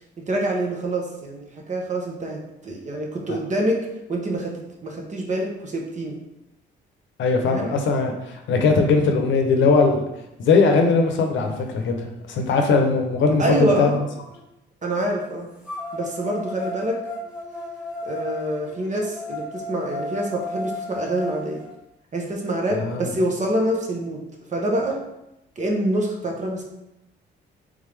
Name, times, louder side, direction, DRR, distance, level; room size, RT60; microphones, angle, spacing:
voice 1, 0.3-3.8 4.1-6.2 7.5-7.7 13.4-14.0 14.8-15.5 15.9-17.0 18.0-21.6 22.1-24.2 24.5-25.0 25.6-26.6, right 1 dB, 35° right, 0 dB, 1.0 m, -26 dB
voice 2, 7.2-10.0 10.4-14.0 22.7-23.1, left 4 dB, 75° left, 3 dB, 0.7 m, -20 dB
sound 1, 11.8-11.9 12.5-14.4 15.6-21.7, left 1 dB, 5° right, 1.5 m, -35 dB
3.6 x 3.5 x 3.3 m, 0.89 s
cardioid pair, 90°, 20 cm